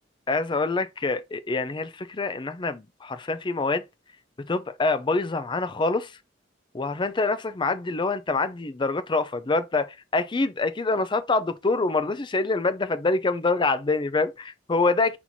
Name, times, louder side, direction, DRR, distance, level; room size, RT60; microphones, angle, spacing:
voice 1, 0.3-3.8 4.4-6.1 6.7-15.2, left 3 dB, 25° left, 0.5 m, -25 dB
4.3 x 2.8 x 4.3 m
head